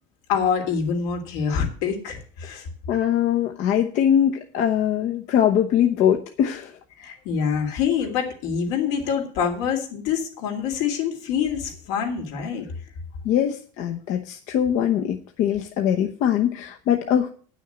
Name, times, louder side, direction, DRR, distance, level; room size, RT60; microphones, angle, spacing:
voice 1, 0.3-2.7 7.0-12.6, left 7 dB, 80° left, 3 dB, 3.2 m, -25 dB
voice 2, 2.9-6.7 13.2-17.3, left 9 dB, 55° left, 3 dB, 1.0 m, -22 dB
9.8 x 6.3 x 8.1 m, 0.43 s
cardioid pair, 150°, 15 cm